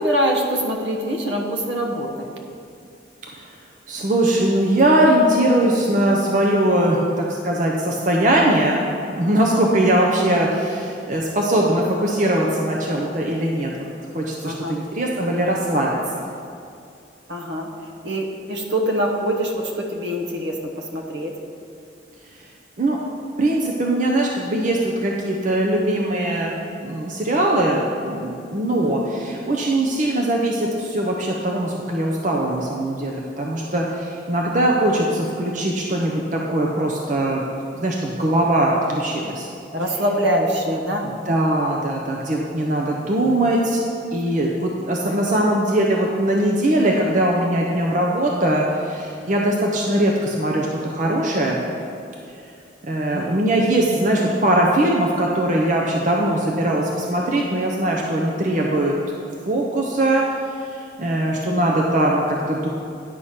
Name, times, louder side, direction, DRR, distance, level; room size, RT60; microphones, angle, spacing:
voice 1, 0.0-2.3 14.4-14.8 17.3-21.3 28.7-29.0 39.7-41.1 53.1-53.4 61.4-61.5, equal, 65° right, 2 dB, 1.0 m, -24 dB
voice 2, 3.9-8.8 9.2-13.7 14.1-15.9 22.8-23.0 23.4-37.4 37.7-39.5 41.3-43.8 44.1-51.6 52.8-58.9 59.5-60.3 60.7-62.7, right 1 dB, 40° right, -1 dB, 0.7 m, -21 dB
10.0 x 4.8 x 5.8 m, 2.5 s
head